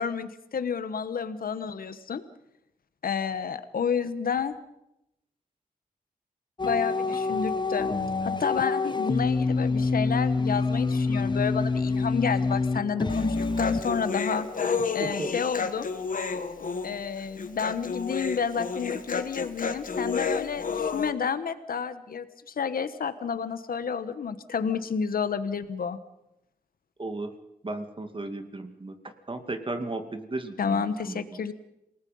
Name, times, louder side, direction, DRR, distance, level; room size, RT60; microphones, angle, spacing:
voice 1, 0.0-2.2 3.0-4.5 6.6-7.9 8.2-14.5 14.9-15.9 16.8-26.0 30.6-31.5, left 6 dB, 85° left, 12 dB, 1.3 m, -30 dB
sound 1, 6.6-14.0, left 3 dB, 30° left, 1.3 m, -27 dB
Human voice, 13.1-21.1, left 5 dB, 65° left, 1.6 m, -31 dB
voice 2, 15.0-15.3 27.0-27.3 27.6-29.0 29.3-31.4, right 2 dB, 35° right, 8 dB, 2.3 m, -35 dB
28.0 x 19.0 x 5.6 m, 0.85 s
wide cardioid pair, 85°, 15 cm